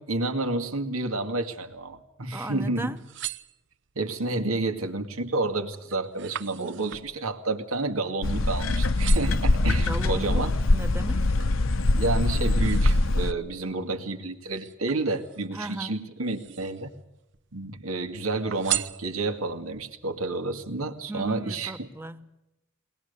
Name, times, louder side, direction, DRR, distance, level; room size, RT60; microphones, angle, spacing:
voice 1, 0.0-3.0 4.0-10.5 11.9-16.9 17.5-21.9, right 2 dB, 90° right, 2.2 m, -30 dB
voice 2, 2.3-3.0 9.9-11.3 15.5-16.0 21.1-22.3, right 2 dB, 10° right, 0.9 m, -36 dB
sound 1, 3.0-4.1 4.7-5.1 5.4-8.5 8.8-9.5 10.1-11.6 12.0-13.6 14.5-15.6 16.2-17.0 17.3-18.0 18.5-19.6 20.1-20.2, right 13 dB, 60° right, 0.7 m, -38 dB
sound 2, 8.2-13.3, left 2 dB, 70° left, 0.9 m, -23 dB
22.5 x 20.0 x 6.7 m
head